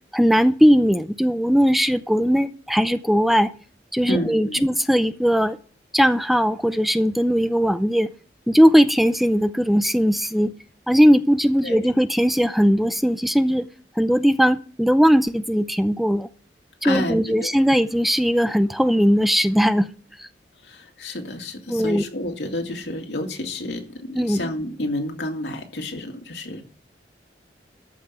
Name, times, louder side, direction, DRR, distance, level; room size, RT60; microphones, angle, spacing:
voice 1, 0.1-3.5 3.9-5.6 5.9-8.1 8.5-10.5 10.9-13.7 14.0-16.3 16.8-19.9 20.2-20.3 21.7-22.0 24.1-24.4, equal, ahead, 12 dB, 0.5 m, -19 dB
voice 2, 4.1-4.6 11.6-11.8 16.8-17.5 20.6-26.6, left 1 dB, 90° left, 3 dB, 2.5 m, -30 dB
13.5 x 5.8 x 8.1 m, 0.39 s
head